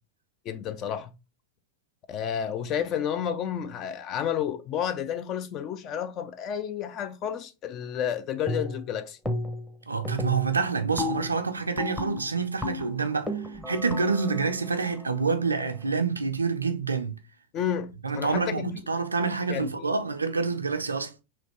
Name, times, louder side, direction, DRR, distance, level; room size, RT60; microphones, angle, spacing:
voice 1, 0.4-1.1 2.1-9.2 17.5-18.8 19.5-19.9, left 9 dB, 35° left, 0.4 m, -31 dB
sound 1, 8.5-8.9 9.2-9.7 10.0-15.9, left 1 dB, 5° left, 0.7 m, -34 dB
voice 2, 9.9-13.3 13.7-17.2 18.0-21.1, right 4 dB, 80° right, 0.5 m, -27 dB
3.2 x 2.8 x 4.1 m
figure-of-eight pair, 90°, 0 cm